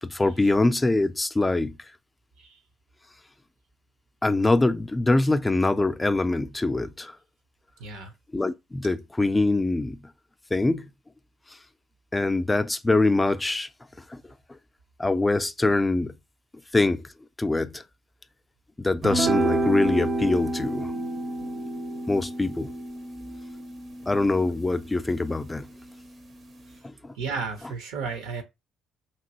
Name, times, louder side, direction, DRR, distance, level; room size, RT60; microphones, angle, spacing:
voice 1, 0.0-1.8 4.2-7.1 8.3-10.0 10.5-10.9 12.1-13.7 14.1-14.2 15.0-16.1 16.7-17.1 17.4-17.8 18.8-20.9 22.1-22.7 24.1-25.7 26.8-27.1, left 2 dB, 15° left, 0.3 m, -24 dB
voice 2, 7.8-8.1 27.1-28.4, right 5 dB, 85° right, 0.7 m, -33 dB
sound 1, 19.0-25.6, right 2 dB, 50° right, 0.5 m, -29 dB
2.9 x 2.6 x 2.8 m
supercardioid pair, 75°, 0 cm